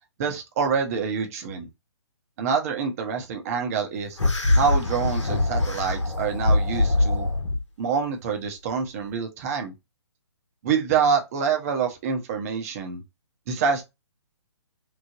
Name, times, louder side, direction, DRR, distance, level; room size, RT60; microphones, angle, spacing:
voice 1, 0.2-1.7 2.4-4.2 4.5-7.3 7.8-9.7 10.6-13.0 13.5-13.8, right 6 dB, 30° right, 0.6 m, -26 dB
sound 1, 4.2-7.6, left 2 dB, 75° left, 0.9 m, -23 dB
3.1 x 2.0 x 2.5 m
figure-of-eight pair, 135°, 15 cm